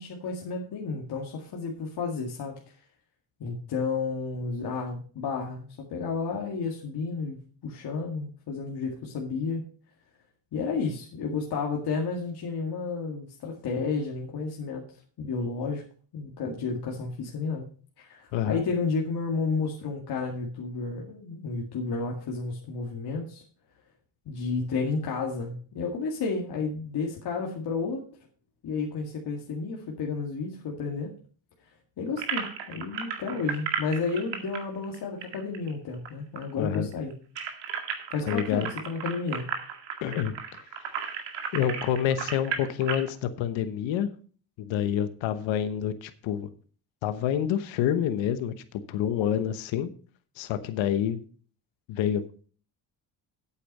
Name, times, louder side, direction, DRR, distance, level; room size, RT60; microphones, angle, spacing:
voice 1, 0.0-2.7 3.4-9.7 10.5-15.8 16.1-17.7 18.0-23.4 24.3-28.0 28.6-31.1 32.0-37.1 38.1-39.5, left 4 dB, 60° left, -1 dB, 2.1 m, -32 dB
sound 1, 32.2-36.1 36.4-36.5 36.7-43.1, right 7 dB, 70° right, 2.1 m, -34 dB
voice 2, 36.6-36.9 38.3-38.7 40.0-40.6 41.5-44.1 44.6-46.5 47.0-48.5 48.9-49.9 50.4-51.2 51.9-52.2, left 9 dB, 85° left, 11 dB, 1.1 m, -27 dB
8.6 x 8.5 x 5.4 m, 0.42 s
cardioid pair, 105°, 45 cm